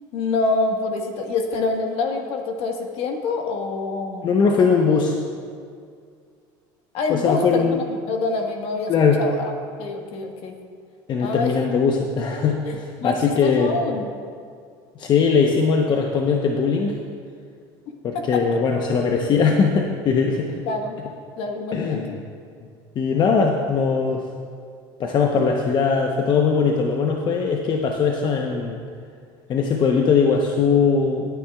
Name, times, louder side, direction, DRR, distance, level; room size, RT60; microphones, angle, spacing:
voice 1, 0.1-4.4 6.9-8.9 9.2-9.5 9.8-10.5 11.2-11.5 12.6-12.7 13.0-14.1 18.1-18.4 20.7-21.0 21.4-22.2, left 3 dB, 65° left, 3 dB, 1.4 m, -26 dB
voice 2, 4.2-5.2 7.1-7.8 8.9-9.2 11.1-13.8 15.0-17.0 18.0-20.5 21.7-22.1 22.9-24.3 25.0-28.8 29.5-31.3, left 5 dB, 45° left, 1 dB, 0.9 m, -20 dB
19.0 x 9.1 x 2.4 m, 2.2 s
supercardioid pair, 95°, 11 cm